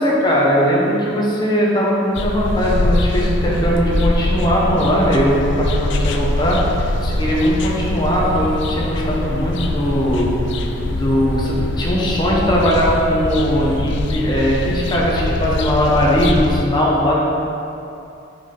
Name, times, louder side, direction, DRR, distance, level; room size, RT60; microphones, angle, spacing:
voice 1, 0.0-10.4 10.8-17.2, equal, 20° left, -4 dB, 1.1 m, -19 dB
sound 1, 2.2-16.6, left 2 dB, 65° left, 0.5 m, -22 dB
7.2 x 5.6 x 3.8 m, 2.7 s
head